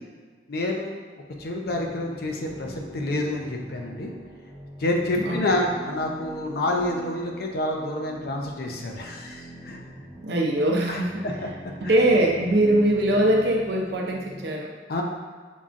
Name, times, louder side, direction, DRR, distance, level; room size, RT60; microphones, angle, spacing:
voice 1, 0.5-1.0 1.4-4.1 4.8-9.8 10.9-11.0 11.2-11.5 11.8-11.9 14.9-15.0, left 1 dB, 55° left, 1 dB, 0.5 m, -28 dB
sound 1, 1.3-14.5, right 1 dB, 5° right, 0.6 m, -43 dB
voice 2, 5.2-5.7 10.2-11.2 11.8-14.7, right 1 dB, 65° right, 0 dB, 0.5 m, -22 dB
5.3 x 2.3 x 2.4 m, 1.6 s
head